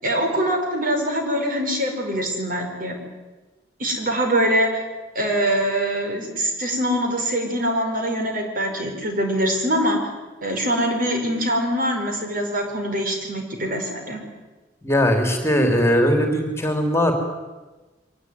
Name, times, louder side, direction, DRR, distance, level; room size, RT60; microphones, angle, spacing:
voice 1, 0.0-3.0 3.8-4.8 5.2-10.0 10.4-14.2, equal, 50° right, 3 dB, 5.2 m, -23 dB
voice 2, 14.8-17.1, equal, 15° left, 5 dB, 3.1 m, -19 dB
23.5 x 19.0 x 9.5 m, 1.2 s
head